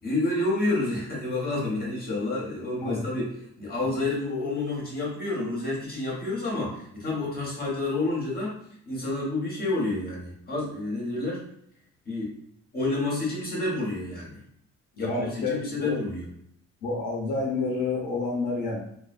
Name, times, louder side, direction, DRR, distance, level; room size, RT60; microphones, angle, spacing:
voice 1, 0.0-3.2 3.6-8.5 8.8-11.4 12.0-12.4 12.7-14.4 15.0-16.3, left 2 dB, 30° left, -5 dB, 1.2 m, -29 dB
voice 2, 15.0-16.0 16.8-18.8, left 3 dB, 90° left, -4 dB, 0.9 m, -29 dB
2.6 x 2.3 x 2.5 m, 0.70 s
cardioid pair, 90°, 30 cm